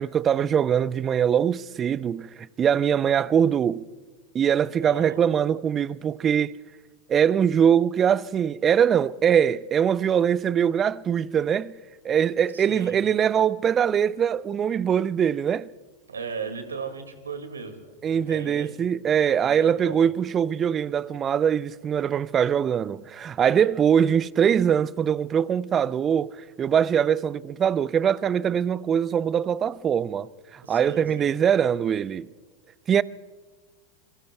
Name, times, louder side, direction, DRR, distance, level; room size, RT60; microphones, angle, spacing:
voice 1, 0.0-2.3 2.6-3.9 4.3-6.5 7.1-11.8 12.0-15.7 18.0-32.3 32.9-33.0, right 8 dB, 30° right, 0.5 m, -22 dB
voice 2, 4.7-5.2 12.5-13.0 16.1-18.8 19.4-20.1 23.5-23.7 30.6-31.3, right 5 dB, 85° right, 2.1 m, -37 dB
26.0 x 23.5 x 2.3 m
hypercardioid pair, 90°, 0 cm